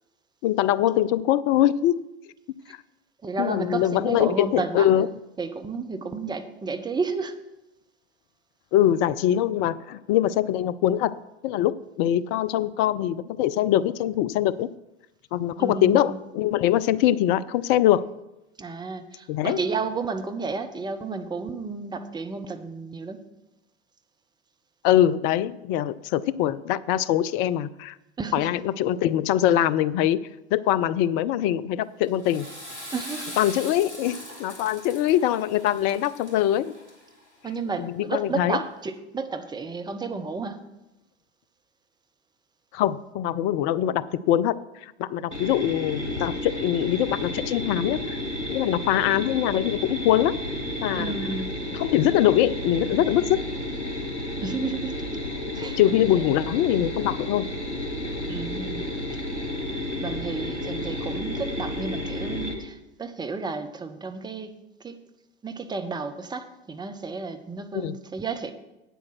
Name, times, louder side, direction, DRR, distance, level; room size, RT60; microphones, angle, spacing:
voice 1, 0.4-2.0 3.4-5.1 8.7-11.2 11.4-14.7 15.3-18.0 19.3-19.6 24.8-27.9 28.3-30.2 30.5-32.5 33.4-36.7 37.8-38.6 42.7-44.6 44.8-48.2 48.5-50.4 50.8-51.1 51.8-53.4 55.8-57.4 67.7-67.9, left 12 dB, 35° left, 17 dB, 0.4 m, -23 dB
voice 2, 3.2-4.9 5.4-7.3 15.6-16.2 18.6-23.2 28.2-28.5 32.9-33.4 37.4-40.6 50.9-51.6 54.4-55.0 55.5-55.8 56.2-56.3 58.3-58.8 60.0-65.0 65.4-68.5, right 4 dB, 15° right, 7 dB, 0.9 m, -32 dB
Water / Toilet flush, 32.0-37.3, left 1 dB, 85° right, 2.8 m, -41 dB
sound 1, 45.3-62.5, left 1 dB, 90° left, 1.5 m, -31 dB
8.7 x 7.9 x 6.1 m, 0.95 s
figure-of-eight pair, 85°, 33 cm